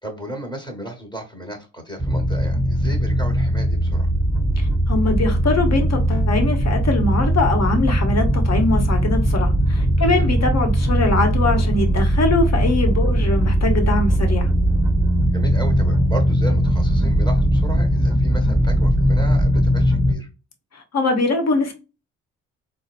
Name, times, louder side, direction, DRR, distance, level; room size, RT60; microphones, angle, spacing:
voice 1, 0.0-4.1 10.0-10.3 15.3-20.3, right 1 dB, 10° left, 1.6 m, -34 dB
sound 1, 2.0-20.1, right 1 dB, 5° right, 0.8 m, -19 dB
voice 2, 4.6-14.5 20.7-21.7, left 3 dB, 45° left, 1.2 m, -22 dB
3.9 x 2.3 x 2.4 m
hypercardioid pair, 45°, 36 cm